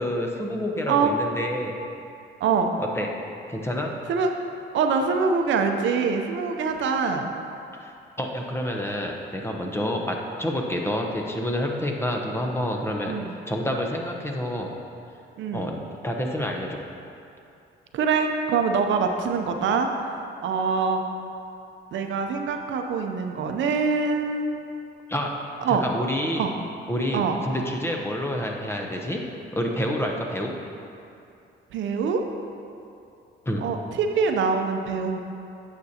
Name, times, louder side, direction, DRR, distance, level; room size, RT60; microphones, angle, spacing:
voice 1, 0.0-1.8 2.8-3.1 3.5-3.9 7.8-13.1 13.5-14.7 15.5-16.8 25.1-25.3 25.8-26.5 26.9-29.2 29.5-30.5 33.5-33.6, left 1 dB, 10° left, 1 dB, 0.8 m, -28 dB
voice 2, 2.4-2.7 4.1-4.3 4.7-7.3 13.0-13.4 15.4-15.7 17.9-19.9 20.4-21.0 21.9-24.5 25.6-25.8 26.4-26.5 27.1-27.3 31.7-32.2 33.6-35.2, right 5 dB, 70° right, 5 dB, 0.6 m, -24 dB
9.2 x 6.8 x 2.8 m, 2.6 s
cardioid pair, 90°, 20 cm